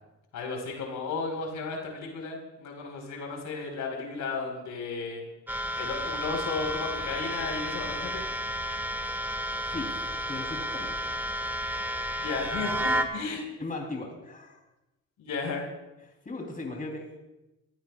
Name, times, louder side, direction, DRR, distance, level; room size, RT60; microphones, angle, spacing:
voice 1, 0.3-5.2 5.8-8.2 12.2-13.4 15.2-15.7, left 4 dB, 80° left, 1 dB, 4.6 m, -34 dB
sound 1, 5.5-13.0, equal, 5° right, 1.5 m, -32 dB
voice 2, 9.7-10.0 10.3-11.0 11.6-12.0 13.6-14.6 16.2-17.2, left 2 dB, 30° left, 0 dB, 3.6 m, -38 dB
28.0 x 15.5 x 2.4 m, 0.98 s
cardioid pair, 90°, 30 cm